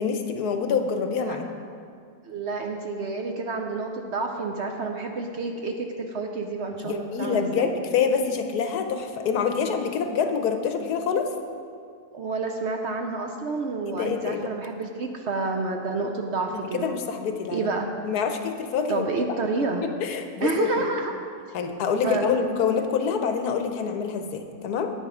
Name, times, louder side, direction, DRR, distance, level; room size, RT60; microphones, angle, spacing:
voice 1, 0.0-1.5 6.8-11.3 13.9-14.5 16.7-17.7 18.0-19.1 19.8-20.8 21.5-24.9, left 6 dB, 80° left, 6 dB, 1.3 m, -26 dB
voice 2, 2.3-7.7 12.1-16.9 17.5-17.9 18.9-19.8 20.4-21.1 22.0-22.3, right 3 dB, 60° right, 3 dB, 0.8 m, -29 dB
9.3 x 9.2 x 4.9 m, 2.3 s
omnidirectional pair, 1.7 m